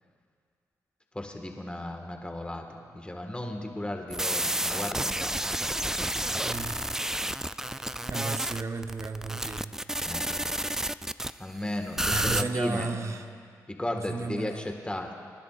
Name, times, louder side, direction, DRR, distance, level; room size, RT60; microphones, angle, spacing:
voice 1, 1.1-5.5 10.0-10.3 11.4-12.9 13.7-15.2, left 1 dB, 15° left, 3 dB, 1.7 m, -35 dB
sound 1, 4.1-11.3 12.0-12.4, right 1 dB, 5° right, 0.3 m, -30 dB
voice 2, 6.4-6.8 8.1-9.7 12.1-13.2 14.1-14.6, right 4 dB, 45° right, 6 dB, 0.9 m, -33 dB
25.0 x 10.0 x 2.5 m, 2.2 s
supercardioid pair, 50°, 7 cm